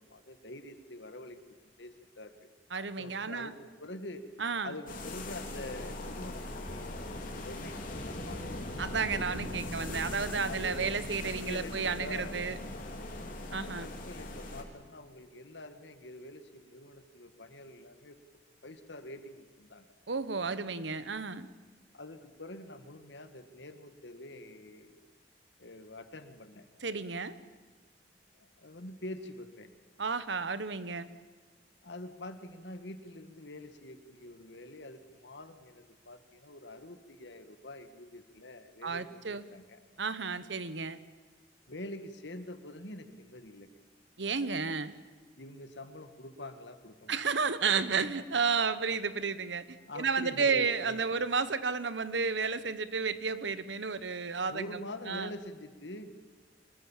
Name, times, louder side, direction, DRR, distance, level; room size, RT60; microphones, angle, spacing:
voice 1, 0.0-2.5 2.8-4.3 4.6-8.5 8.7-9.5 10.4-12.4 13.5-18.2 18.6-19.9 21.9-25.1 25.6-26.7 28.4-29.7 31.8-39.8 41.7-43.7 45.4-47.5 49.9-51.2 54.5-56.1, left 1 dB, 80° left, 9 dB, 1.9 m, -46 dB
voice 2, 2.7-3.5 4.4-4.7 8.8-12.6 13.5-13.9 20.1-21.5 26.8-27.3 30.0-31.1 38.8-39.4 40.0-41.0 44.2-44.9 47.1-54.6 55.1-55.3, right 5 dB, 90° right, 13 dB, 1.2 m, -32 dB
sound 1, 4.9-14.6, left 1 dB, 50° left, 3.5 m, -40 dB
24.5 x 21.5 x 7.4 m, 1.5 s
head